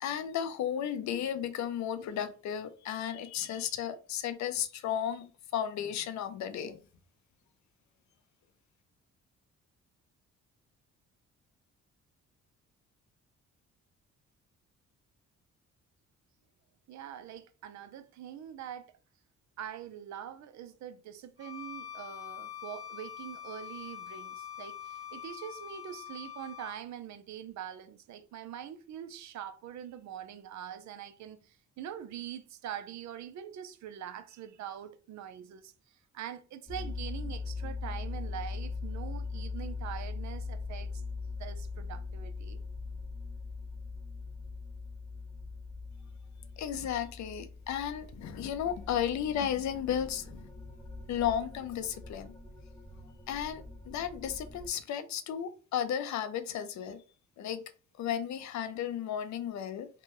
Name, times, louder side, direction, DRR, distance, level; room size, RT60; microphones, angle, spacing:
voice 1, 0.0-6.8 46.6-50.5 51.1-52.3 53.3-57.0 57.4-57.7 58.0-59.9, left 9 dB, 65° left, 0.5 m, -34 dB
voice 2, 16.9-18.9 19.6-41.0 41.4-42.6, right 10 dB, 65° right, 0.5 m, -44 dB
Bowed string instrument, 21.4-26.8, left 10 dB, 50° right, 1.6 m, -44 dB
sound 1, 36.7-54.7, left 4 dB, ahead, 0.7 m, -41 dB
3.3 x 2.2 x 2.9 m
cardioid pair, 90°, 30 cm